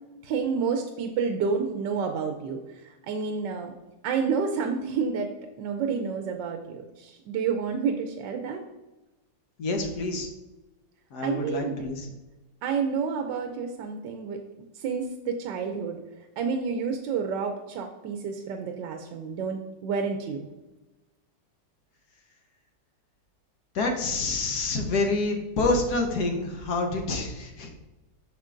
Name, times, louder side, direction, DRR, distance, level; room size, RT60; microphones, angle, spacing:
voice 1, 0.2-3.7 4.0-5.3 5.6-8.6 11.2-11.8 12.6-14.4 14.7-16.0 16.4-20.5, right 5 dB, 85° right, 4 dB, 1.3 m, -29 dB
voice 2, 9.6-10.3 11.1-12.1 23.7-27.7, left 2 dB, 65° left, 3 dB, 1.5 m, -27 dB
8.0 x 6.2 x 2.5 m, 1.1 s
omnidirectional pair, 1.9 m